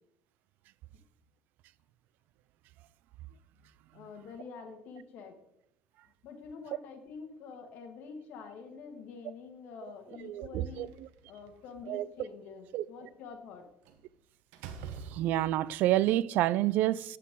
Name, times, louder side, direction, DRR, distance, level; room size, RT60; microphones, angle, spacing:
voice 1, 3.9-5.4 6.2-10.9 11.3-13.6, left 5 dB, 65° left, 1.7 m, -47 dB
voice 2, 10.2-10.9 11.9-12.1 12.7-12.8 14.9-17.2, right 14 dB, 70° right, 0.3 m, -28 dB
Slam, 10.7-11.7 13.9-14.1 14.5-15.7, right 7 dB, 85° right, 0.9 m, -45 dB
8.3 x 7.6 x 3.7 m
cardioid pair, 125°, 3 cm